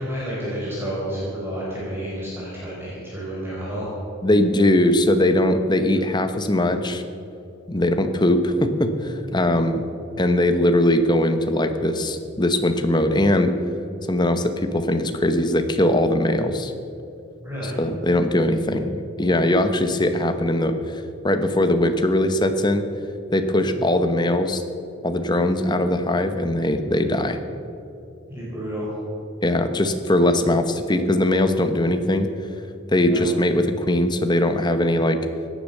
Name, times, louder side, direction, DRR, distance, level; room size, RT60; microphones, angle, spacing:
voice 1, 0.0-3.9 7.7-7.9 9.4-9.6 17.4-17.7 23.6-23.7 28.3-28.9 33.0-33.2, equal, 10° right, -7 dB, 4.4 m, -30 dB
voice 2, 4.2-7.0 7.7-9.8 10.2-13.5 14.0-16.7 17.6-18.9 19.2-22.9 23.3-24.6 25.0-27.4 29.4-32.3 32.9-35.2, left 1 dB, 20° left, 8 dB, 1.0 m, -20 dB
17.0 x 10.5 x 6.7 m, 2.7 s
head